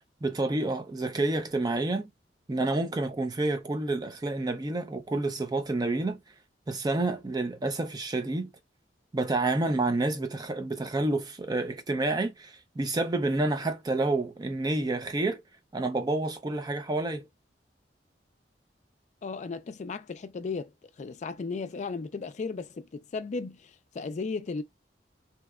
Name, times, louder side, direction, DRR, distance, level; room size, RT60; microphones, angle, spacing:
voice 1, 0.2-2.1 2.5-6.2 6.7-8.5 9.1-15.4 15.7-17.3, right 2 dB, 25° right, 0.4 m, -29 dB
voice 2, 19.2-20.7 21.0-24.6, left 4 dB, 40° left, 0.4 m, -35 dB
2.8 x 2.2 x 2.2 m
head